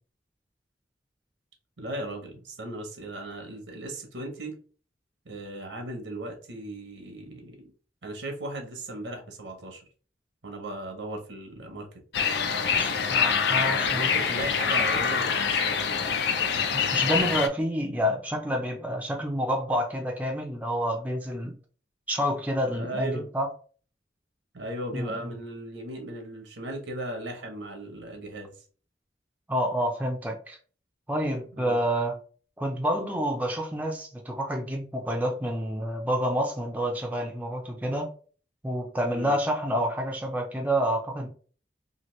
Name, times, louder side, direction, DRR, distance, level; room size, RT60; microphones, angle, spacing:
voice 1, 1.8-4.6 5.3-7.6 8.0-9.8 10.4-11.9 13.5-16.1 22.7-23.3 24.5-28.5 31.6-31.8 39.1-39.4, right 1 dB, 80° right, 3 dB, 0.7 m, -37 dB
sound 1, 12.1-17.5, left 6 dB, 65° left, 0.4 m, -25 dB
voice 2, 12.8-14.1 16.9-21.5 22.1-23.5 24.9-25.1 29.5-30.6 31.1-32.2 32.6-38.1 38.6-41.3, equal, 10° right, 1 dB, 0.4 m, -28 dB
2.8 x 2.5 x 3.0 m, 0.40 s
head